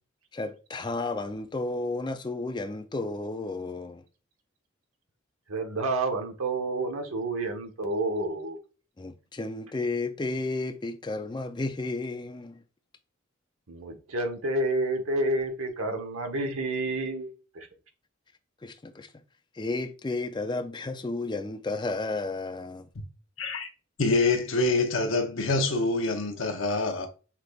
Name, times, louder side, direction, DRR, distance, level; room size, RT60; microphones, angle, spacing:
voice 1, 0.3-4.0 9.0-12.6 18.6-19.1 19.5-22.9, left 2 dB, 20° left, 0.4 m, -32 dB
voice 2, 5.5-8.6 13.7-17.3 17.5-17.7, right 2 dB, 90° right, 1.0 m, -29 dB
voice 3, 23.4-23.7 24.0-27.1, left 3 dB, 70° left, 0.8 m, -26 dB
5.8 x 3.3 x 2.3 m
head